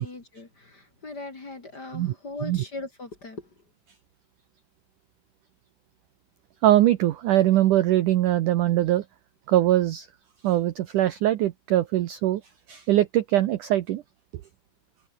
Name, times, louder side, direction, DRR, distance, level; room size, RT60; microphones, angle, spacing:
voice 1, 0.0-3.5, left 2 dB, 25° left, 2.8 m, -39 dB
voice 2, 6.6-9.0 9.5-10.1 10.4-12.4 12.7-14.0, right 13 dB, 85° right, 1.8 m, -22 dB
omnidirectional pair, 5.0 m